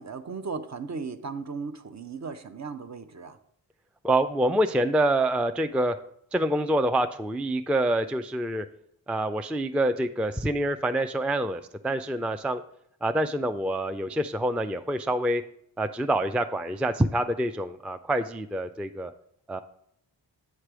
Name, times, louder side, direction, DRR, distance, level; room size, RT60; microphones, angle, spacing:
voice 1, 0.0-3.4, right 4 dB, 40° right, 10 dB, 0.7 m, -36 dB
voice 2, 4.0-6.0 6.3-8.7 9.1-12.6 13.0-15.4 15.8-19.1 19.5-19.6, right 1 dB, 5° right, 9 dB, 0.3 m, -26 dB
8.2 x 3.3 x 6.1 m, 0.71 s
cardioid pair, 40°, 43 cm